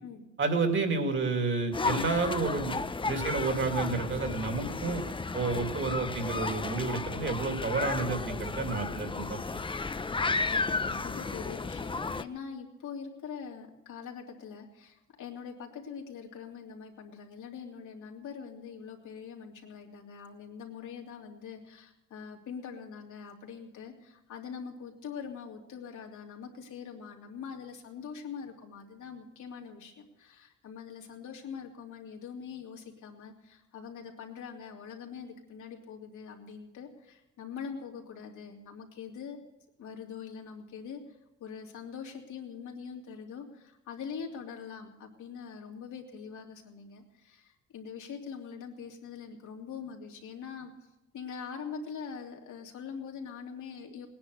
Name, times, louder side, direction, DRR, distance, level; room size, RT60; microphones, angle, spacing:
voice 1, 0.4-2.8 3.0-5.0 5.3-9.6, right 4 dB, 40° right, 5 dB, 2.6 m, -30 dB
sound 1, 1.7-12.2, left 4 dB, 15° left, 0.6 m, -33 dB
voice 2, 10.2-39.4 39.8-50.9 51.1-54.1, left 6 dB, 75° left, 0 dB, 3.0 m, -43 dB
19.0 x 10.5 x 6.6 m, 0.94 s
cardioid pair, 90°, 30 cm